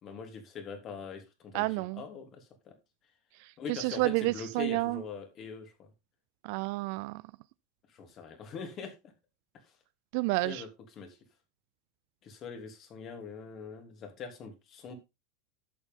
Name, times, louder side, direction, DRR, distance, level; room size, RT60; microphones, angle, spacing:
voice 1, 0.0-2.7 3.6-5.9 7.9-9.1 9.5-9.7 10.4-10.7 11.0-11.2 12.2-14.9, left 5 dB, 40° left, 3.2 m, -43 dB
voice 2, 1.5-2.0 3.4-5.0 6.4-7.2 10.1-10.6, right 22 dB, 65° right, 0.4 m, -30 dB
11.0 x 7.1 x 3.7 m
hypercardioid pair, 105°, 0 cm